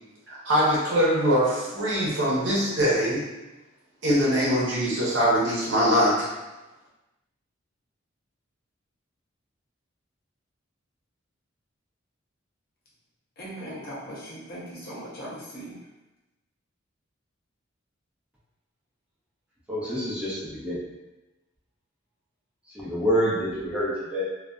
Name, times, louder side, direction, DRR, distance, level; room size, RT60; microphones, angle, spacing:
voice 1, 0.3-3.2 4.0-6.3, equal, 65° right, -6 dB, 0.8 m, -22 dB
voice 2, 13.4-15.8, equal, 50° left, -7 dB, 0.7 m, -39 dB
voice 3, 19.7-20.9 22.7-24.2, equal, 5° right, -8 dB, 0.6 m, -27 dB
2.6 x 2.3 x 2.2 m, 1.1 s
head